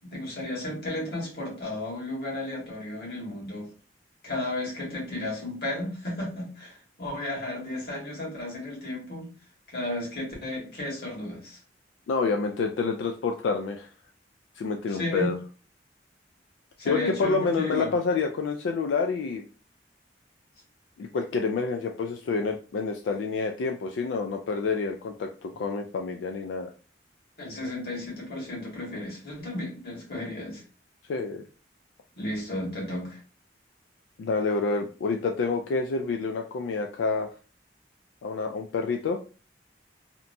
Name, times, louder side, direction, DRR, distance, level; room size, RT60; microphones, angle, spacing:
voice 1, 0.0-3.7 4.2-9.3 9.7-11.6 14.9-15.4 16.8-17.9 27.4-30.6 32.2-33.2, left 1 dB, 60° left, -3 dB, 1.5 m, -33 dB
voice 2, 12.1-13.9 14.6-15.4 16.8-19.4 21.0-26.7 31.1-31.4 34.2-37.3 38.2-39.2, left 4 dB, 90° left, 3 dB, 0.3 m, -28 dB
2.9 x 2.2 x 2.6 m, 0.36 s
head